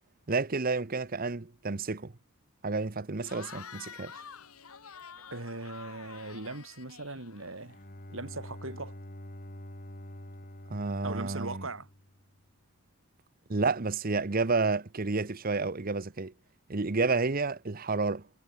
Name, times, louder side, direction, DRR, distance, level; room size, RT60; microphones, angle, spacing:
voice 1, 0.3-2.1 2.6-4.1 10.7-11.7 13.5-16.3 16.7-18.2, right 3 dB, 40° right, 0.9 m, -30 dB
Cheering / Crowd, 3.2-7.8, left 7 dB, 85° left, 1.6 m, -48 dB
voice 2, 5.3-7.8 8.1-9.0 11.0-11.9, right 2 dB, 65° right, 3.1 m, -39 dB
Bowed string instrument, 7.4-12.4, equal, 40° left, 4.8 m, -47 dB
head